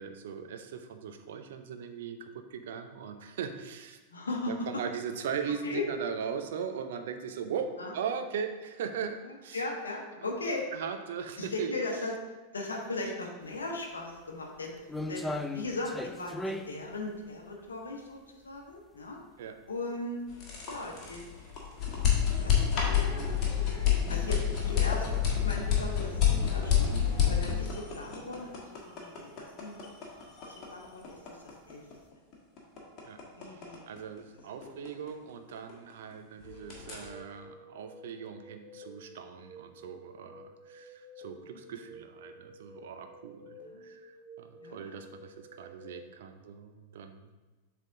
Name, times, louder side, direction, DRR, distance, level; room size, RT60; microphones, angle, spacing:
voice 1, 0.0-4.0 4.5-7.7 7.9-9.2 9.4-9.6 10.2-10.3 10.7-11.7 19.4-19.6 25.0-25.1 33.0-33.2 33.5-47.3, right 7 dB, 55° right, 7 dB, 0.5 m, -39 dB
voice 2, 4.1-4.5 5.6-5.9 7.8-7.9 9.5-10.7 11.4-12.1 12.5-14.7 15.1-19.2 19.7-20.2 20.7-21.2 21.9-22.1 22.3-23.5 24.1-24.4 24.7-25.1 25.4-26.9 27.2-28.5 28.8-29.8 30.4-31.4 31.7-31.8 33.4-33.8 34.6-34.7 36.4-36.5 43.6-43.8 44.6-45.0, left 2 dB, 75° left, 0 dB, 0.9 m, -38 dB
sound 1, 13.5-13.6 14.1-19.2 19.6-19.7 20.4-20.5 20.8-20.9 21.9-22.0 22.3-22.5 23.0-23.1 23.4-23.5 25.6-25.7 27.0-27.4 27.7-28.2 28.5-28.7 29.0-29.1 30.2-30.4 31.0-31.7 32.0-32.1, left 1 dB, 5° left, 0.4 m, -38 dB
sound 2, 20.3-36.1 36.4-37.1, left 8 dB, 35° left, 1.4 m, -29 dB
sound 3, 36.4-46.0, equal, 30° right, 1.7 m, -52 dB
7.4 x 3.5 x 3.7 m, 1.2 s
figure-of-eight pair, 90°, 0 cm